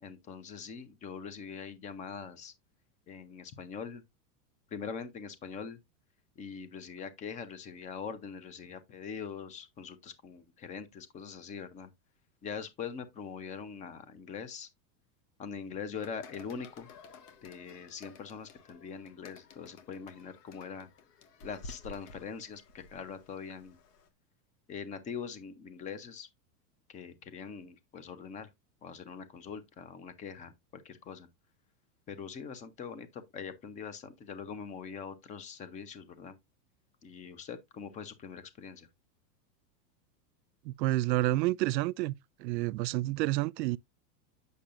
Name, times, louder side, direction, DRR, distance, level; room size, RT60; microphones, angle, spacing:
voice 1, 0.0-2.5 3.1-4.0 4.7-5.8 6.4-11.9 12.4-14.7 15.4-16.9 17.4-20.9 21.4-23.8 24.7-26.3 26.9-28.5 28.8-31.3 32.1-36.4 37.0-38.9, left 6 dB, 15° left, 0.6 m, -43 dB
sound 1, 15.9-24.1, left 3 dB, 70° left, 1.7 m, -53 dB
voice 2, 40.6-42.1 42.4-43.8, right 18 dB, 85° right, 0.6 m, -29 dB
8.4 x 6.6 x 2.5 m
supercardioid pair, 155°, 49 cm